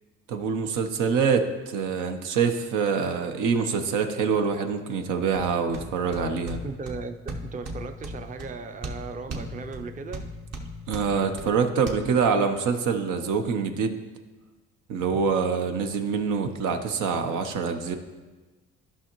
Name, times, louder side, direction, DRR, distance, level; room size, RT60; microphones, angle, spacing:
voice 1, 0.3-6.6 10.9-14.0 14.9-17.9, right 5 dB, 90° right, 6 dB, 0.8 m, -25 dB
sound 1, 5.3-11.9, right 1 dB, 55° right, 1.1 m, -38 dB
voice 2, 6.6-10.3, right 4 dB, 25° right, 7 dB, 0.5 m, -37 dB
12.5 x 5.6 x 3.0 m, 1.2 s
cardioid pair, 90°, 30 cm